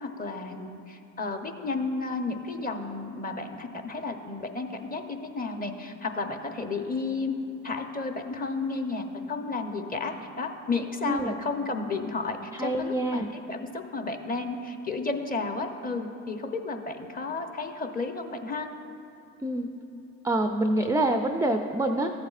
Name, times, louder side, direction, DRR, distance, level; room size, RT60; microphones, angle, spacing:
voice 1, 0.0-7.4 7.6-18.7, left 3 dB, 25° left, 6 dB, 0.8 m, -32 dB
voice 2, 11.0-11.4 12.5-13.3 19.4-19.7 20.2-22.1, right 1 dB, 10° right, 5 dB, 0.3 m, -26 dB
14.0 x 8.5 x 2.5 m, 2.9 s
supercardioid pair, 75°, 37 cm